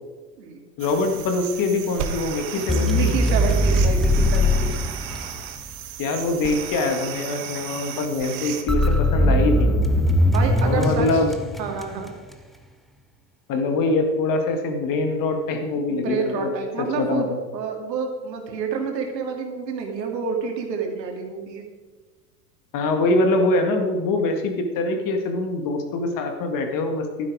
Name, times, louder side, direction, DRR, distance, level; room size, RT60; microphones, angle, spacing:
voice 1, 0.8-3.2 6.0-9.8 10.6-11.3 13.5-16.5 16.8-17.3 22.7-27.3, left 2 dB, 40° left, 5 dB, 2.0 m, -24 dB
sound 1, 0.8-8.6, right 8 dB, 55° right, 1.6 m, -34 dB
voice 2, 2.5-4.8 10.3-11.2 11.6-12.1 15.9-17.3 17.5-21.6, right 5 dB, 80° right, 3 dB, 2.6 m, -28 dB
sound 2, 2.7-5.7 8.7-12.1, left 1 dB, ahead, 0.7 m, -20 dB
12.0 x 9.7 x 4.9 m, 1.3 s
hypercardioid pair, 105°, 50 cm